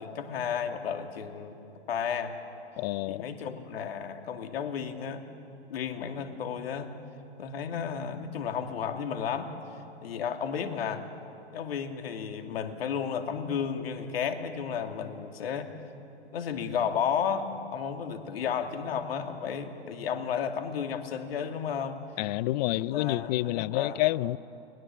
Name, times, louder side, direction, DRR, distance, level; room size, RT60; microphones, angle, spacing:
voice 1, 0.0-1.5 1.9-2.3 3.1-5.3 5.7-7.0 7.4-9.5 10.0-11.0 11.5-15.7 16.3-22.0 22.7-24.0, left 7 dB, 65° left, 2.5 m, -33 dB
voice 2, 2.8-3.2 22.2-24.4, left 17 dB, 40° left, 0.5 m, -28 dB
29.5 x 21.5 x 7.5 m
hypercardioid pair, 115°, 33 cm